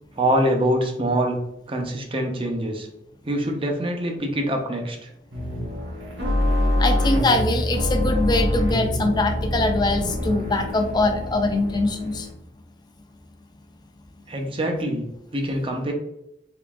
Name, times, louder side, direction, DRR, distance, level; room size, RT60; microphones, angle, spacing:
voice 1, 0.2-1.4 1.7-2.9 3.2-5.0 14.3-15.1 15.3-15.9, right 1 dB, 30° right, 2 dB, 0.6 m, -24 dB
sound 1, 5.3-12.3, left 1 dB, 85° right, 1.1 m, -25 dB
voice 2, 6.8-12.3, left 2 dB, 25° left, 5 dB, 0.4 m, -22 dB
3.7 x 3.5 x 2.4 m, 0.83 s
head